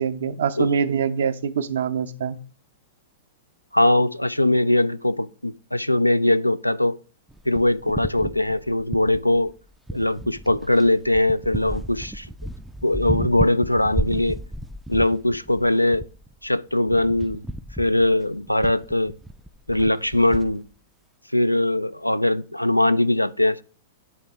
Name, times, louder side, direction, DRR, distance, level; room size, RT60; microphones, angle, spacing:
voice 1, 0.0-2.4, right 7 dB, 60° right, 0.5 m, -24 dB
voice 2, 3.7-7.0 7.5-9.5 9.9-12.3 12.8-14.4 14.9-16.0 16.4-17.4 17.8-19.1 19.7-20.6 21.3-23.6, left 1 dB, 90° left, 0.3 m, -21 dB
sound 1, 7.3-9.5 9.9-20.6, right 1 dB, 5° right, 0.4 m, -33 dB
10.0 x 3.4 x 4.5 m
figure-of-eight pair, 100°, 0 cm